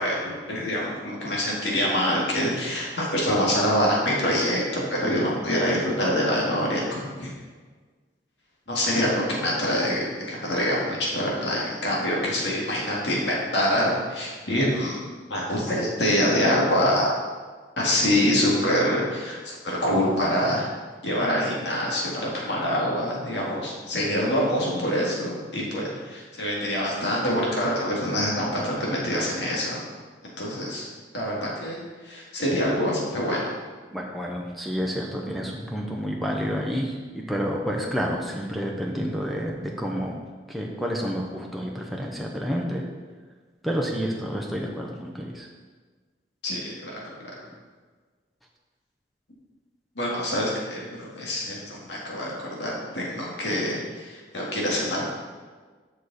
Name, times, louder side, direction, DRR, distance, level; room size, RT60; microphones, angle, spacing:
voice 1, 0.0-7.3 8.7-17.1 17.8-20.7 21.0-29.9 30.4-30.9 31.1-33.4 46.4-47.3 50.0-55.1, equal, 85° left, -4 dB, 2.1 m, -25 dB
voice 2, 33.9-40.2 40.5-42.8 43.6-45.5 47.5-47.6, equal, ahead, -2 dB, 0.8 m, -29 dB
7.3 x 6.5 x 4.2 m, 1.4 s
head